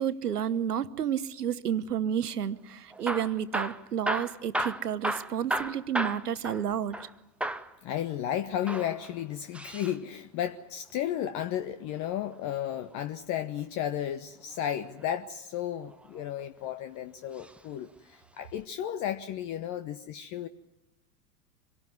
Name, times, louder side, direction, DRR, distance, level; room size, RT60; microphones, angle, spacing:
voice 1, 0.0-7.0, right 9 dB, 80° right, 14 dB, 1.1 m, -31 dB
Hammer / Drill, 2.9-7.1 7.4-7.7 8.5-10.0 11.7-13.0 14.7-15.1 15.8-16.7 17.3-17.6 17.9-18.0 18.6-18.7, right 1 dB, 5° right, 0.8 m, -34 dB
voice 2, 7.8-20.5, left 10 dB, 40° left, 9 dB, 1.0 m, -33 dB
25.5 x 18.0 x 9.6 m, 0.94 s
hypercardioid pair, 95°, 46 cm